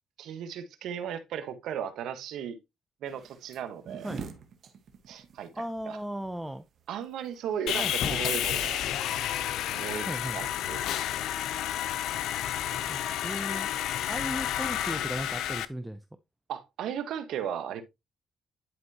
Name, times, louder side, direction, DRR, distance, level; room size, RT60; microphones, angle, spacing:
voice 1, 0.2-2.6 3.0-4.1 5.1-5.5 5.9-6.0 6.9-8.9 9.7-10.1 10.3-10.9 12.8-12.9 16.5-17.8, right 8 dB, 80° right, 1.2 m, -36 dB
sound 1, 3.1-8.2, right 6 dB, 60° right, 1.4 m, -45 dB
voice 2, 5.6-6.6 7.8-8.3 10.1-10.4 12.9-13.7 14.1-16.0, right 1 dB, 5° right, 0.6 m, -36 dB
Sawing, 7.7-15.6, left 11 dB, 85° left, 0.5 m, -31 dB
10.5 x 4.5 x 2.8 m
cardioid pair, 90°, 0 cm